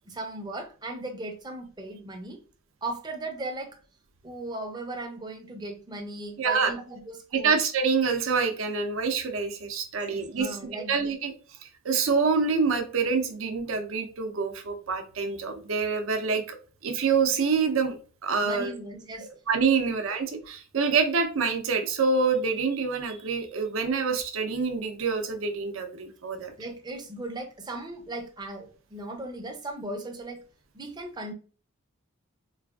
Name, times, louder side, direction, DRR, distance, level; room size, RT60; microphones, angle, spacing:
voice 1, 0.1-2.4 2.8-3.8 4.2-7.6 10.1-11.0 18.4-19.3 19.8-20.2 26.6-30.4 30.7-31.3, right 2 dB, 20° right, 0.5 m, -37 dB
voice 2, 6.4-6.7 7.3-10.5 10.9-11.3 11.8-16.6 16.8-18.0 18.2-18.7 19.5-26.5, right 5 dB, 70° right, 0.6 m, -26 dB
3.9 x 2.4 x 2.3 m
head